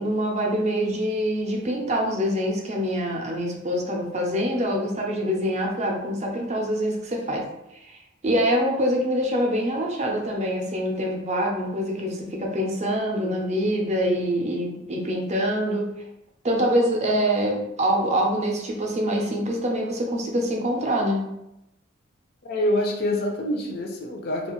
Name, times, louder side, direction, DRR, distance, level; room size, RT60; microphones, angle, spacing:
voice 1, 0.0-7.5 7.8-15.9 16.4-21.3, equal, 35° right, 1 dB, 0.5 m, -25 dB
voice 2, 22.4-24.5, left 1 dB, 50° left, 1 dB, 0.4 m, -26 dB
2.4 x 2.3 x 3.0 m, 0.85 s
head